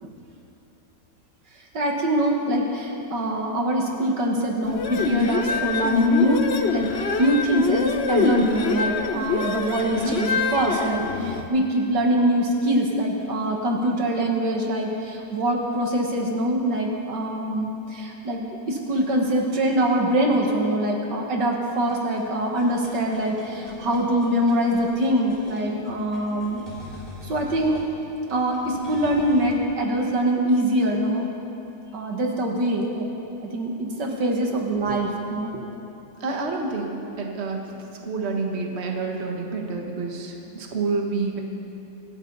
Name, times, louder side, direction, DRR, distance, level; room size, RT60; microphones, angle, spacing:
voice 1, 1.7-18.4 18.7-26.6 27.2-27.8 28.3-31.3 31.9-33.1 33.5-35.5, right 1 dB, 80° right, 0 dB, 2.3 m, -24 dB
sound 1, 4.7-11.5, left 4 dB, 45° left, 0.9 m, -24 dB
sound 2, 21.9-29.6, left 1 dB, 25° right, 3.9 m, -43 dB
voice 2, 36.2-36.9 37.2-41.4, right 4 dB, 40° right, 1 dB, 1.7 m, -28 dB
25.5 x 13.5 x 4.0 m, 2.9 s
omnidirectional pair, 1.8 m